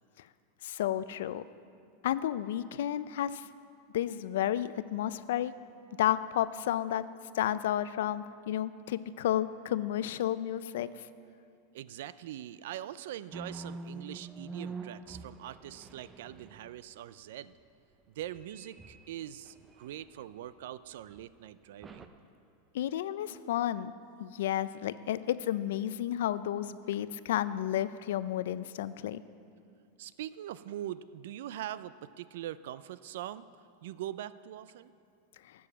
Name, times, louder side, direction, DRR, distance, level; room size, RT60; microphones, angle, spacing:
voice 1, 0.6-1.4 2.0-3.5 3.9-5.5 6.0-7.0 7.4-10.9 22.7-23.9 24.2-29.2, left 11 dB, 80° left, 15 dB, 0.4 m, -31 dB
voice 2, 11.7-17.5 18.1-22.1 30.0-33.5 33.8-34.9, right 12 dB, 70° right, 16 dB, 0.4 m, -42 dB
sound 1, 13.3-16.9 18.2-20.5 21.0-21.2 21.8-22.1, right 3 dB, 15° right, 0.5 m, -46 dB
11.5 x 7.0 x 7.2 m, 2.4 s
supercardioid pair, 165°, 0 cm